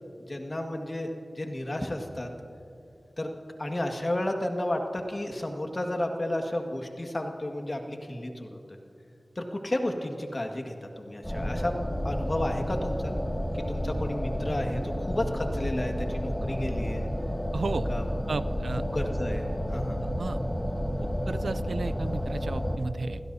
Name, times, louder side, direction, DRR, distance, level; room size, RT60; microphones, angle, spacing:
voice 1, 0.3-1.1 1.4-2.3 3.2-3.3 3.6-8.6 9.3-11.7 12.0-13.2 13.7-17.1 17.9-18.0 18.9-20.0, left 1 dB, 40° left, 3 dB, 1.8 m, -32 dB
sound 1, 11.2-22.8, equal, 10° left, 2.1 m, -31 dB
voice 2, 17.5-17.9 18.3-18.8 20.2-20.4 21.0-23.2, right 3 dB, 80° right, 14 dB, 0.4 m, -33 dB
29.5 x 16.5 x 2.8 m, 2.7 s
cardioid pair, 40°, 0 cm